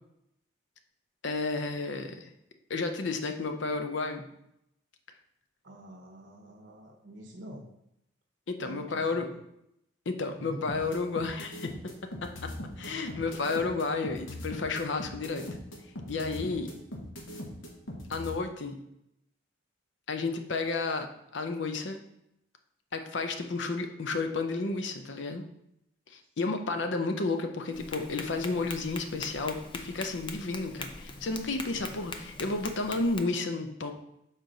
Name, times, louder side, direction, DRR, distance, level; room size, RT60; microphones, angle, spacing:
voice 1, 1.2-2.3 2.7-4.3 8.5-9.3 10.1-11.7 12.2-12.5 12.8-15.4 16.1-16.7 18.1-18.8 20.1-21.1 21.3-22.0 22.9-25.4 26.1-33.9, left 3 dB, 65° left, 6 dB, 0.6 m, -32 dB
voice 2, 5.6-7.7 8.5-9.4 10.4-10.7 12.6-13.2, right 1 dB, 65° right, 0 dB, 0.9 m, -46 dB
sound 1, 10.7-18.3, left 1 dB, 85° left, 1.1 m, -40 dB
Tap, 27.7-33.2, left 3 dB, 25° left, 0.4 m, -42 dB
6.4 x 4.1 x 3.9 m, 0.80 s
head